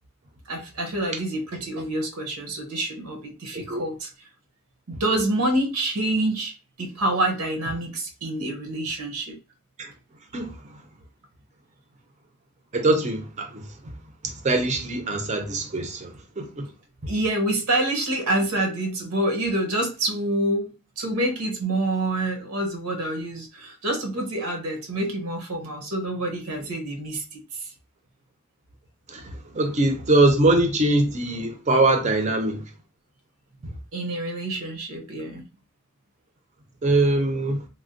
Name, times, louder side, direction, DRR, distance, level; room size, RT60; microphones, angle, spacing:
voice 1, 0.5-4.1 4.9-9.4 17.1-27.7 33.9-35.4, right 1 dB, 85° right, 0.8 m, -27 dB
voice 2, 12.7-13.7 14.2-16.7 29.1-32.6 36.8-37.7, right 2 dB, 30° right, 0.5 m, -22 dB
3.3 x 2.1 x 2.5 m
head